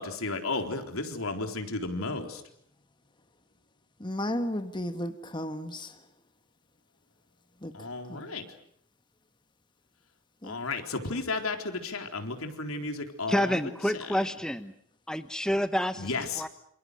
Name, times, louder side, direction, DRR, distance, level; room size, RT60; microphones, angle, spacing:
voice 1, 0.0-2.4 7.7-8.4 10.4-13.6 13.9-14.0 16.0-16.4, left 3 dB, 85° left, 5 dB, 4.0 m, -33 dB
voice 2, 4.0-6.0 7.6-8.3 10.4-10.6, left 1 dB, 20° left, 8 dB, 1.5 m, -34 dB
voice 3, 13.3-14.7 15.1-16.5, equal, 5° left, 10 dB, 1.0 m, -29 dB
28.0 x 27.5 x 6.6 m, 0.69 s
head